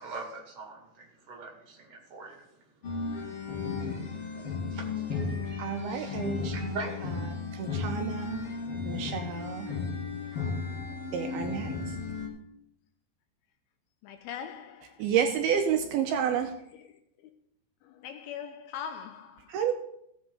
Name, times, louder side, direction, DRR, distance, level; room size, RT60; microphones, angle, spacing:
voice 1, 0.0-7.4, right 3 dB, 55° right, 3.5 m, -44 dB
sound 1, 2.8-12.3, left 5 dB, 40° left, 2.7 m, -34 dB
voice 2, 5.6-6.8 7.5-8.5 8.8-9.7 11.1-11.9 15.0-16.5 19.5-19.7, right 8 dB, 80° right, 2.5 m, -30 dB
voice 3, 14.0-15.0 17.8-19.5, left 8 dB, 80° left, 2.4 m, -41 dB
16.0 x 8.1 x 3.9 m
omnidirectional pair, 4.9 m